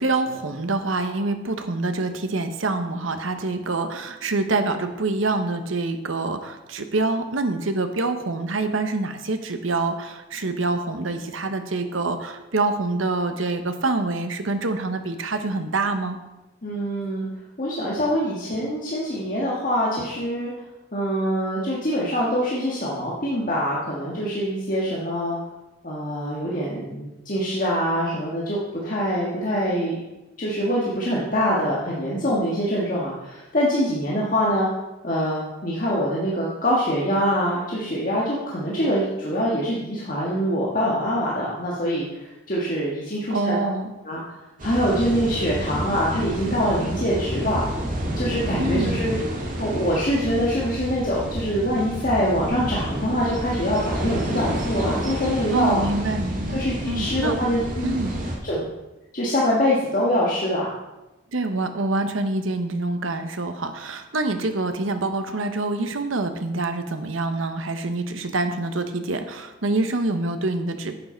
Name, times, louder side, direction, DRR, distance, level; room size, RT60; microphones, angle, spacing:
voice 1, 0.0-16.2 43.3-43.9 48.6-49.0 55.5-57.4 57.8-58.1 61.3-71.0, right 2 dB, 80° right, 8 dB, 1.0 m, -26 dB
voice 2, 16.6-17.3 17.6-20.5 20.9-25.4 25.8-29.9 30.4-34.7 35.0-43.5 44.0-44.2 44.6-47.7 48.2-49.2 49.6-55.9 56.5-58.7 59.1-60.7, equal, 40° left, -6 dB, 1.7 m, -24 dB
sound 1, 44.6-58.4, equal, 40° right, 1.8 m, -29 dB
11.0 x 8.2 x 4.5 m, 1.0 s
head